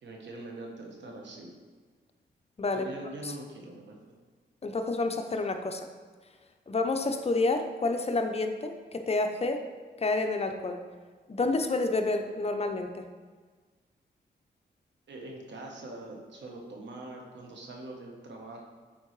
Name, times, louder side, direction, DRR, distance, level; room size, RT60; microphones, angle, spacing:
voice 1, 0.0-1.5 2.7-4.0 15.1-18.7, right 2 dB, 80° right, 1 dB, 1.2 m, -43 dB
voice 2, 2.6-2.9 3.2-3.3 4.6-5.9 6.7-9.6 10.0-10.8 11.3-13.1, left 3 dB, 35° left, 5 dB, 0.6 m, -29 dB
8.1 x 4.5 x 3.2 m, 1.4 s
cardioid pair, 80°, 18 cm